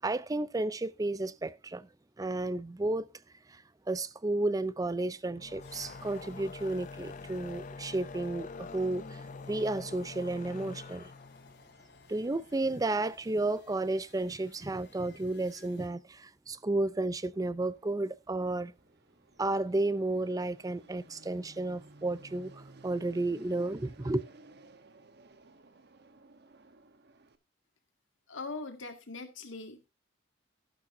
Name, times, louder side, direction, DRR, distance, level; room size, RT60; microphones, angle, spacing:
voice 1, 0.0-1.9 2.2-3.1 3.5-3.6 3.9-9.2 9.5-11.1 12.1-18.7 19.4-24.2, right 2 dB, 20° right, 0.5 m, -32 dB
sound 1, 5.3-12.6, left 4 dB, 40° left, 0.6 m, -46 dB
sound 2, 5.6-15.9, left 3 dB, 60° left, 3.4 m, -60 dB
Fixed-wing aircraft airplane, 17.1-27.4, right 2 dB, 60° right, 1.1 m, -57 dB
voice 2, 28.3-29.9, left 3 dB, 75° left, 2.1 m, -41 dB
12.0 x 11.5 x 2.7 m
head